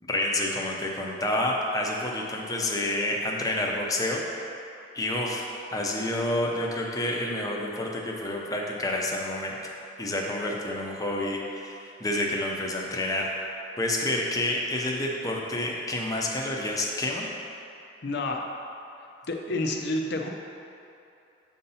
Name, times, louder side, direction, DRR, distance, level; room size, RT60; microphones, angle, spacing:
voice 1, 0.0-4.2 4.9-5.5 5.7-9.7 10.0-13.3 13.8-17.3, left 1 dB, 20° left, -1 dB, 0.6 m, -29 dB
voice 2, 18.0-18.4 19.3-20.3, left 2 dB, 60° left, 2 dB, 0.6 m, -29 dB
7.6 x 2.8 x 5.5 m, 2.8 s
head